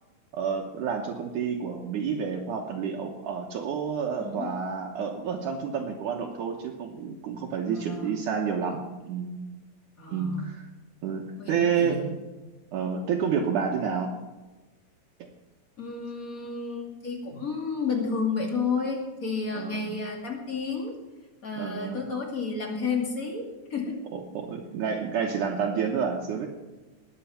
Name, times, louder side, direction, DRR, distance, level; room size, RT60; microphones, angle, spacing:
voice 1, 0.3-9.4 10.1-10.7 11.0-12.1 12.7-14.1 19.5-19.9 21.6-22.0 24.1-26.5, right 6 dB, 70° right, 0 dB, 2.4 m, -29 dB
voice 2, 4.2-4.5 7.7-8.1 10.0-10.5 11.4-12.2 15.8-21.0 21.4-24.0, left 4 dB, 30° left, 1 dB, 2.2 m, -31 dB
19.0 x 8.4 x 5.8 m, 1.2 s
omnidirectional pair, 4.0 m